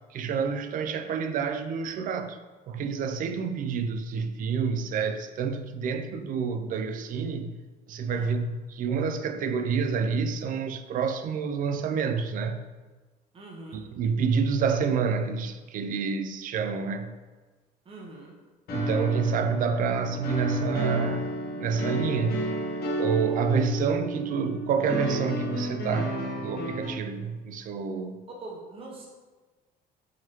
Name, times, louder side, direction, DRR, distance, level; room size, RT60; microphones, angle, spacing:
voice 1, 0.1-2.4 2.7-7.5 7.9-12.7 13.7-17.2 18.7-21.3 21.6-22.5 23.0-28.2, right 5 dB, 55° right, 0.4 m, -28 dB
voice 2, 13.3-13.9 17.9-18.4 28.4-29.1, right 2 dB, 35° right, 0.8 m, -43 dB
sound 1, 18.7-27.0, equal, 65° left, 0.9 m, -32 dB
4.8 x 2.9 x 2.9 m
cardioid pair, 110°, 17 cm